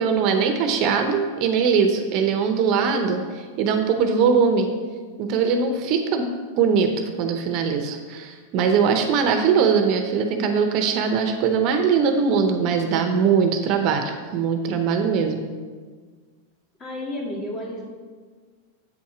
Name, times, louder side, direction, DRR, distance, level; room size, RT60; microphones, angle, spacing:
voice 1, 0.0-4.7 5.2-6.3 6.6-15.5, right 6 dB, 45° right, 6 dB, 0.7 m, -21 dB
voice 2, 16.8-17.8, left 1 dB, 25° left, -2 dB, 1.8 m, -31 dB
8.2 x 4.2 x 4.9 m, 1.5 s
supercardioid pair, 135°, 0 cm